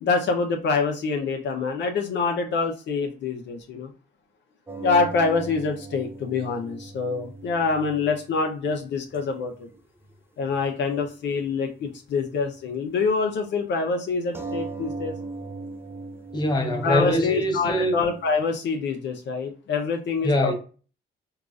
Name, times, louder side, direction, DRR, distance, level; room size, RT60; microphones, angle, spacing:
voice 1, 0.0-3.9 4.8-9.7 10.4-15.1 16.8-20.5, left 4 dB, 65° left, 0.6 m, -25 dB
sound 1, 4.7-9.8 10.0-10.1 10.5-10.6 11.0-11.1 14.3-18.5, right 3 dB, 10° right, 0.4 m, -38 dB
voice 2, 16.3-18.0 20.2-20.5, left 1 dB, 20° left, 0.9 m, -23 dB
3.7 x 2.4 x 2.4 m
cardioid pair, 90°, 20 cm